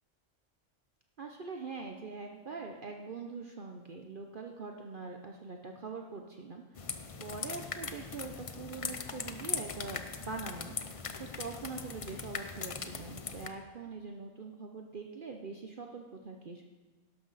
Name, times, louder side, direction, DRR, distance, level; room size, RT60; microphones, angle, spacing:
voice 1, 1.2-10.7 11.2-16.6, right 4 dB, 50° right, 3 dB, 0.8 m, -43 dB
sound 1, 6.7-13.5, left 5 dB, 40° left, 0.5 m, -40 dB
12.0 x 11.5 x 4.0 m, 1.3 s
omnidirectional pair, 1.3 m